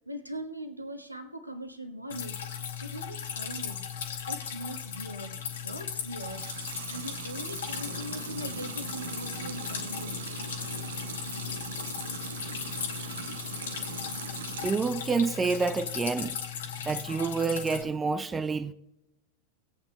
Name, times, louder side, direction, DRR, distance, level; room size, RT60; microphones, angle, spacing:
voice 1, 0.1-3.9 4.3-6.5 6.9-10.2, equal, 90° right, 1.2 m, -41 dB
Drip, 2.1-17.8, left 8 dB, 60° left, 1.3 m, -37 dB
Water tap faucet / Sink (filling or washing) / Liquid, 6.1-15.0 15.4-16.1, right 10 dB, 60° right, 0.6 m, -42 dB
sound 1, 7.7-14.7, left 1 dB, 85° left, 1.3 m, -44 dB
voice 2, 14.6-16.4 16.9-18.7, right 4 dB, 15° right, 0.4 m, -28 dB
19.5 x 8.6 x 2.3 m
figure-of-eight pair, 90°, 0 cm